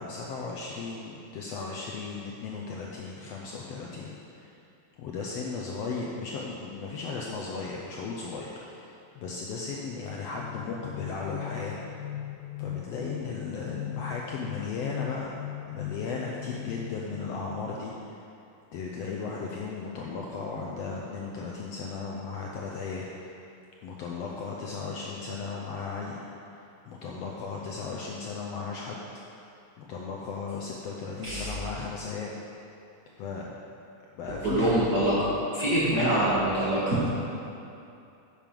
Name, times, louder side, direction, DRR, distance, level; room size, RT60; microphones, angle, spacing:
voice 1, 0.0-4.5 5.0-12.0 12.6-15.4 15.7-18.2 18.7-23.3 23.8-29.0 29.8-32.3 33.2-33.5 34.1-34.9 35.9-36.2, left 4 dB, 75° left, -2 dB, 1.5 m, -36 dB
sound 1, 10.1-18.0, left 13 dB, 90° left, 2.1 m, -39 dB
voice 2, 34.4-37.1, right 1 dB, 45° right, -7 dB, 1.6 m, -25 dB
9.4 x 7.4 x 5.3 m, 2.7 s
omnidirectional pair, 3.5 m